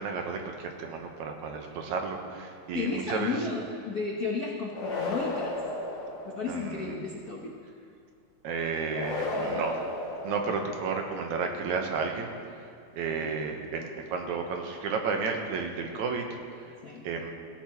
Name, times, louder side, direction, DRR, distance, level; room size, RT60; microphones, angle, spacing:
voice 1, 0.0-3.4 6.5-7.0 8.4-9.7 10.2-12.3 12.9-16.7 17.0-17.3, right 5 dB, 75° right, 3 dB, 2.4 m, -32 dB
voice 2, 2.7-5.6 6.2-7.6 9.3-9.9 10.5-10.6 13.2-13.4 16.8-17.1, left 4 dB, 85° left, -1 dB, 0.8 m, -34 dB
sound 1, 4.7-6.8 8.9-11.0, left 2 dB, 55° left, 3.2 m, -34 dB
17.5 x 16.5 x 3.0 m, 2.3 s
omnidirectional pair, 3.4 m